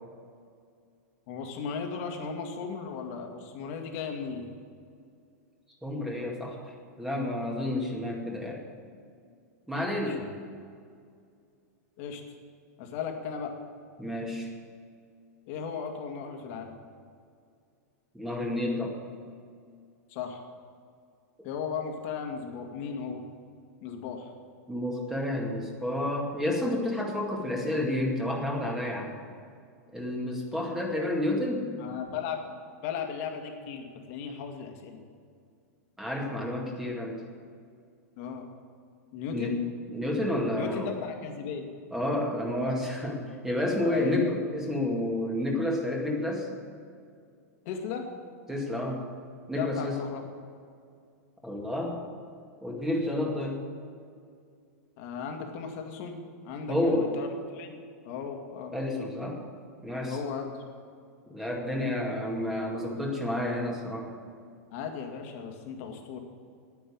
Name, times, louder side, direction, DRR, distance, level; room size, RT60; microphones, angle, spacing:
voice 1, 1.3-4.5 10.1-10.3 12.0-12.2 12.8-13.5 15.5-16.8 20.1-20.4 21.4-23.2 23.8-24.3 31.8-32.4 32.8-35.0 38.2-38.5 39.1-39.6 40.5-41.7 43.8-44.2 47.7-48.1 49.6-50.2 53.4-53.5 55.0-56.2 56.4-58.7 60.1-60.5 64.7-66.2, left 6 dB, 55° left, 3 dB, 2.1 m, -36 dB
voice 2, 5.8-6.6 7.0-8.6 9.7-10.2 14.0-14.5 18.1-19.0 24.7-29.1 29.9-31.7 36.0-37.2 39.3-39.6 39.9-40.9 41.9-46.5 48.5-49.0 49.5-50.0 51.4-52.0 52.6-53.6 56.7-57.1 58.7-59.4 59.8-60.2 61.3-64.1, left 1 dB, 5° right, -1 dB, 2.2 m, -30 dB
10.0 x 9.2 x 8.7 m, 2.3 s
hypercardioid pair, 125°, 9 cm